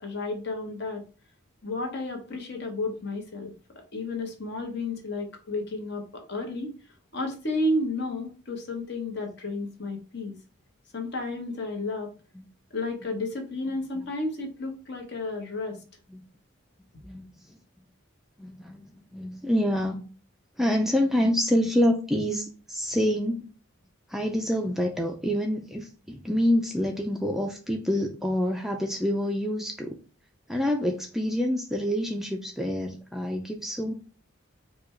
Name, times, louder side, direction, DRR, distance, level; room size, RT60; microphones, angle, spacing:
voice 1, 0.0-1.0 1.6-3.5 3.9-6.7 7.1-10.3 10.9-12.1 12.7-15.8, left 2 dB, 50° left, 3 dB, 1.1 m, -32 dB
voice 2, 17.0-17.5 18.4-20.0 20.6-23.5 24.1-30.0 30.5-33.9, equal, ahead, 2 dB, 0.4 m, -27 dB
4.9 x 2.4 x 4.3 m, 0.36 s
head